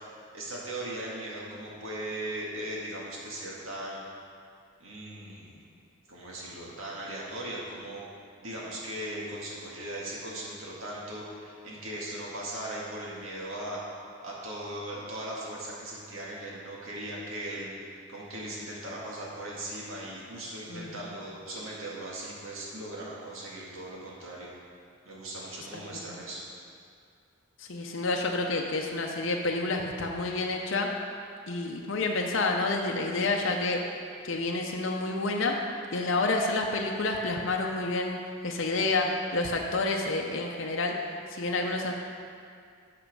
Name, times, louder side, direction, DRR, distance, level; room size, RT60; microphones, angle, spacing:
voice 1, 0.3-4.0 4.8-5.6 6.1-8.0 8.4-13.8 14.2-24.5 25.1-26.4, right 1 dB, 75° right, -5 dB, 2.0 m, -38 dB
voice 2, 20.7-21.0 25.7-26.2 27.6-30.9 31.5-33.8 34.2-35.6 35.9-38.2 38.4-40.9 41.3-41.9, left 3 dB, 65° left, 1 dB, 0.7 m, -29 dB
9.2 x 5.9 x 5.3 m, 2.3 s
head